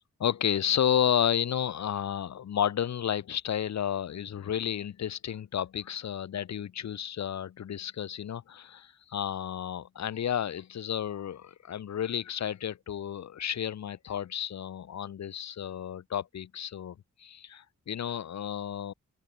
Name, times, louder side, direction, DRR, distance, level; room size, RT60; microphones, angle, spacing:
voice 1, 0.2-18.9, left 9 dB, 65° left, 0.6 m, -32 dB
wide cardioid pair, 75°, 30 cm